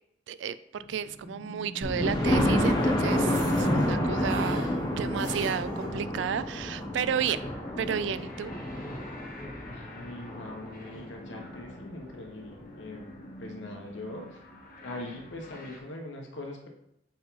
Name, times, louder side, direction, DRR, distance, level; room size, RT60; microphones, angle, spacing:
voice 1, 0.3-4.6 5.0-7.5 7.8-8.6, right 7 dB, 75° right, 15 dB, 0.3 m, -32 dB
sound 1, 0.7-15.8, left 1 dB, 45° left, 1.1 m, -48 dB
Thunder, 1.8-11.5 12.1-12.2 12.6-12.7 13.0-13.1, left 1 dB, 20° left, 0.9 m, -29 dB
sound 2, 1.9-5.9 6.3-6.4 6.7-6.8, equal, 20° right, 1.7 m, -38 dB
voice 2, 9.6-14.5 14.8-16.7, left 2 dB, 85° left, 2 dB, 1.2 m, -42 dB
5.1 x 4.6 x 4.0 m, 0.79 s
head